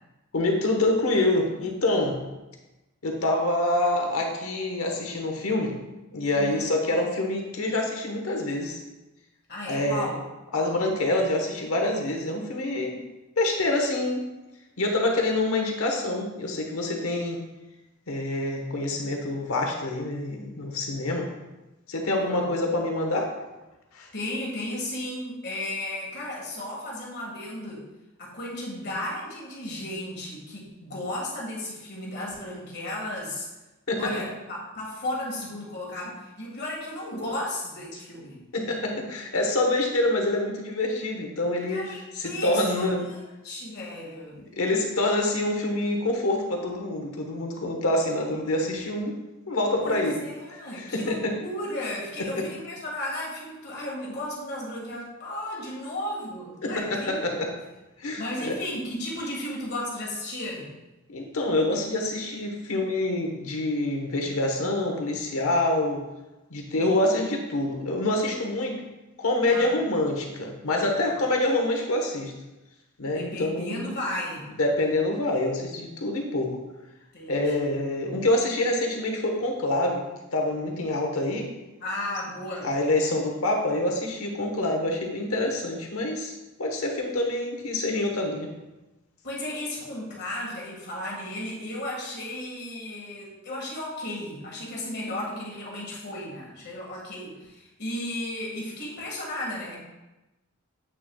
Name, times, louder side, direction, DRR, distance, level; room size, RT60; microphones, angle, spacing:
voice 1, 0.3-2.2 3.0-5.7 6.1-8.8 9.7-10.1 10.5-13.0 13.4-14.3 14.8-17.4 18.1-21.3 21.9-23.3 23.9-24.1 33.9-34.1 38.5-41.8 42.1-43.0 44.5-49.1 49.5-50.2 50.7-51.3 52.2-52.5 56.6-57.5 58.0-58.5 61.1-66.0 66.5-68.8 69.2-72.3 73.0-73.9 74.6-76.6 77.3-80.0 80.3-81.5 82.6-86.3 86.6-88.5, left 2 dB, 85° left, 2 dB, 1.2 m, -26 dB
voice 2, 6.3-6.7 9.5-10.2 22.1-22.5 24.1-27.9 28.2-33.5 34.0-38.4 41.7-44.4 49.8-57.3 58.2-60.7 69.5-69.8 71.1-71.2 73.1-74.5 77.1-77.7 81.8-82.7 89.2-99.8, left 1 dB, 50° left, -3 dB, 1.8 m, -34 dB
7.8 x 6.3 x 2.3 m, 1.0 s
head